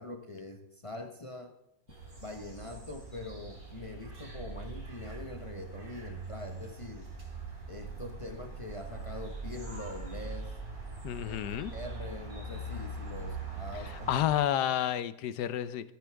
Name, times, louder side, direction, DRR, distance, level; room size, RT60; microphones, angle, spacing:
voice 1, 0.0-1.5 2.2-7.1 7.7-10.5 11.2-14.1, left 2 dB, 30° left, 4 dB, 0.6 m, -43 dB
sound 1, 1.9-14.3, right 3 dB, 55° right, 4.1 m, -42 dB
voice 2, 11.0-11.7 14.1-15.9, left 11 dB, 75° left, 15 dB, 1.2 m, -30 dB
13.5 x 9.3 x 3.4 m, 0.88 s
omnidirectional pair, 1.8 m